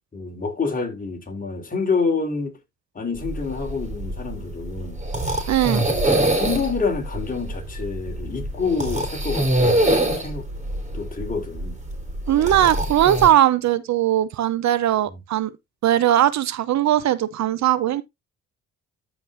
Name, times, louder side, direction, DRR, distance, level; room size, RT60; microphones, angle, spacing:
voice 1, 0.1-2.6 3.0-5.0 5.8-10.5 10.9-11.8, left 4 dB, 30° left, 3.6 m, -27 dB
sound 1, 3.2-13.3, right 1 dB, 25° right, 4.1 m, -24 dB
voice 2, 5.5-5.8 12.3-15.5 15.8-18.0, right 12 dB, 65° right, 0.8 m, -19 dB
14.0 x 5.3 x 2.6 m
cardioid pair, 90°, 30 cm